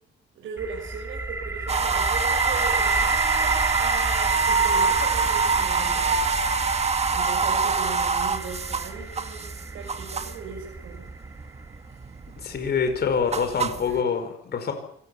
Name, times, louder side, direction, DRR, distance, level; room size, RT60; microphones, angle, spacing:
voice 1, 0.3-6.2 7.1-11.1 11.9-12.0 13.5-14.1, right 5 dB, 80° right, -1 dB, 6.9 m, -38 dB
sound 1, 0.6-12.4, right 3 dB, 15° right, 2.4 m, -30 dB
sound 2, 1.7-10.5 10.9-11.6 11.9-14.0, right 5 dB, 30° right, 1.8 m, -25 dB
voice 2, 12.4-14.7, left 6 dB, 55° left, 6 dB, 5.0 m, -25 dB
25.5 x 19.5 x 7.1 m, 0.70 s
cardioid pair, 90°, 20 cm